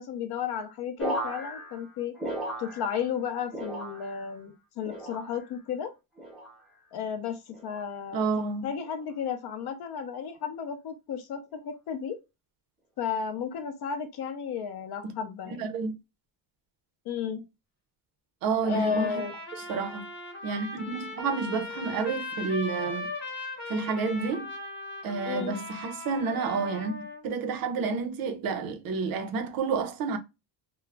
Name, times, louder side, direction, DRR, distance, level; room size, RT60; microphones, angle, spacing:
voice 1, 0.0-2.2 2.6-5.9 6.9-8.3 8.6-12.2 13.0-15.7 17.1-17.4 18.6-19.3 25.2-25.6, left 7 dB, 55° left, 0.6 m, -33 dB
sound 1, 1.0-3.2 3.5-4.4 4.8-5.5 6.2-6.6 7.5-7.9 8.8-9.1, right 1 dB, ahead, 0.5 m, -37 dB
voice 2, 8.1-8.7 15.0-15.2 15.5-15.9 18.4-19.1 19.7-20.1 20.4-23.1 23.7-24.5 25.0-26.9 27.2-30.2, right 4 dB, 50° right, 0.5 m, -30 dB
Trumpet, 18.6-27.2, left 2 dB, 25° left, 0.9 m, -38 dB
2.3 x 2.0 x 3.1 m
cardioid pair, 170°, 47 cm